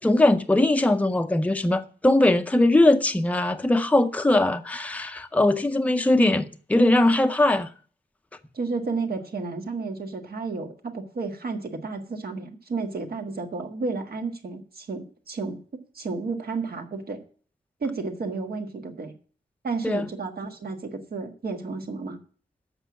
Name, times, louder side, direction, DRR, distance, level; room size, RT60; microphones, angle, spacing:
voice 1, 0.0-7.7 19.8-20.1, left 1 dB, 10° left, 0.6 m, -20 dB
voice 2, 8.5-15.6 15.9-17.2 17.8-19.1 19.6-22.2, right 4 dB, 65° right, 1.5 m, -32 dB
7.9 x 6.2 x 8.1 m
wide cardioid pair, 160°, 17 cm